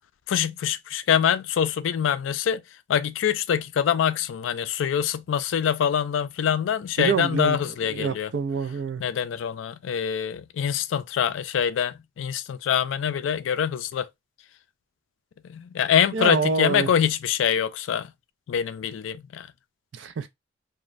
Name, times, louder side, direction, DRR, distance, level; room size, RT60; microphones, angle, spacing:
voice 1, 0.3-2.6 2.9-8.3 9.0-14.1 15.5-18.1 18.5-19.5, left 8 dB, 75° left, 0.3 m, -25 dB
voice 2, 7.0-9.0 16.1-16.9 19.9-20.3, right 5 dB, 60° right, 0.4 m, -27 dB
3.0 x 2.1 x 2.4 m
head